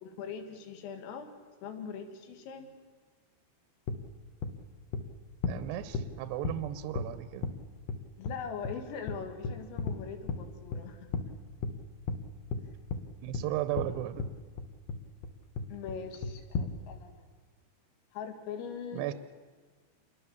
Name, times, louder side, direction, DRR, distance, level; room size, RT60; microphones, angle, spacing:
voice 1, 0.0-1.3 1.6-2.7 8.2-11.3 15.7-17.2 18.1-19.0, left 6 dB, 90° left, 6 dB, 4.7 m, -41 dB
sound 1, 3.9-4.0 4.4-4.5 4.9-5.0 5.4-5.6 5.9-6.1 6.4-6.6 7.0-7.1 7.4-7.5 7.9-8.0 8.2-8.3 8.6-8.7 9.1-9.2 9.4-10.0 10.3-10.4 10.7-10.8 11.1-11.3 11.6-11.8 12.1-12.2 12.5-12.6 12.9-13.0 13.3-13.4 13.8-13.9 14.2-14.3 14.6-15.0 15.2-15.3 15.6-16.0 16.2-16.7, left 4 dB, 65° left, 2.8 m, -33 dB
voice 2, 5.5-7.5 13.2-14.3 18.9-19.1, right 13 dB, 80° right, 12 dB, 2.5 m, -35 dB
28.0 x 22.0 x 7.2 m, 1.5 s
omnidirectional pair, 5.8 m